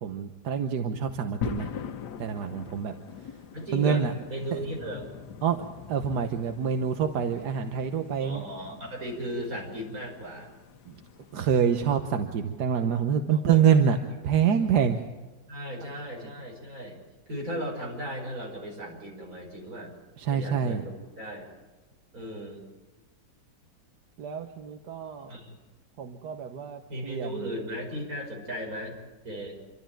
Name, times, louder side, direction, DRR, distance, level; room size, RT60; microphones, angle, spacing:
voice 1, 0.0-1.7 2.2-2.9 3.7-4.1 4.5-4.6 5.4-8.4 11.3-14.0 14.2-15.0 20.2-20.8 24.2-25.3 26.0-27.5, right 7 dB, 85° right, 6 dB, 1.6 m, -26 dB
sound 1, 1.4-11.6, left 7 dB, 90° left, 1.5 m, -42 dB
voice 2, 3.5-4.0 4.3-5.1 8.2-10.5 13.3-13.9 15.5-17.0 17.3-19.9 20.3-21.5 22.1-22.6 25.3-25.6 26.9-29.0 29.2-29.6, equal, 60° right, 0 dB, 6.0 m, -36 dB
27.0 x 12.5 x 9.0 m, 1.2 s
omnidirectional pair, 1.7 m